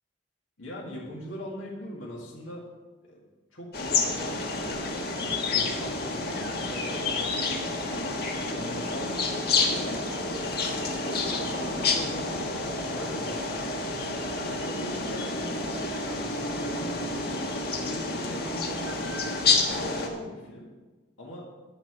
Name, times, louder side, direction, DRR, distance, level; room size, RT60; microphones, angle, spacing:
voice 1, 0.6-2.6 3.0-3.2 3.5-4.9 5.2-7.7 8.5-11.0 11.6-13.9 14.3-17.3 17.8-19.2 19.5-20.7 21.2-21.5, left 1 dB, 85° left, -4 dB, 2.1 m, -41 dB
sound 1, 3.7-20.1, left 3 dB, 50° left, 1.4 m, -29 dB
11.0 x 5.9 x 7.4 m, 1.3 s
head